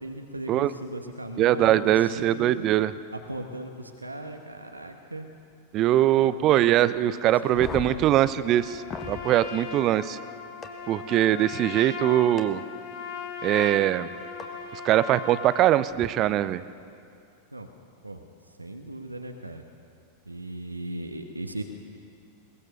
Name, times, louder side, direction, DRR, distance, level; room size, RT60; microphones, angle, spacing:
voice 1, 0.0-2.5 3.1-5.3 6.2-8.1 17.5-17.7 18.0-18.2 18.6-19.6 20.3-21.6, right 1 dB, 85° right, 5 dB, 1.2 m, -38 dB
voice 2, 1.4-2.9 5.7-8.8 9.1-10.2 10.9-12.6 13.4-14.1 14.7-16.6, right 13 dB, 35° right, 16 dB, 0.6 m, -22 dB
sound 1, 7.5-9.2 10.6-10.7 12.4-12.5 14.4-14.5 15.9-16.1, left 5 dB, 25° left, 1.5 m, -37 dB
Trumpet, 8.4-15.7, left 6 dB, 45° left, 2.2 m, -38 dB
22.0 x 19.0 x 6.7 m, 2.5 s
figure-of-eight pair, 90°, 0 cm